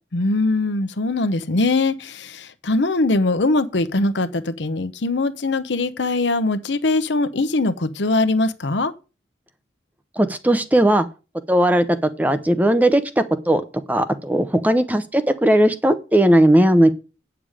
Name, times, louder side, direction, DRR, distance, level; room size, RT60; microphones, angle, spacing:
voice 1, 0.1-8.9, left 2 dB, 90° left, 0.9 m, -21 dB
voice 2, 10.2-11.1 11.5-13.6 13.9-16.9, right 1 dB, 10° right, 0.6 m, -17 dB
8.9 x 7.0 x 4.9 m
head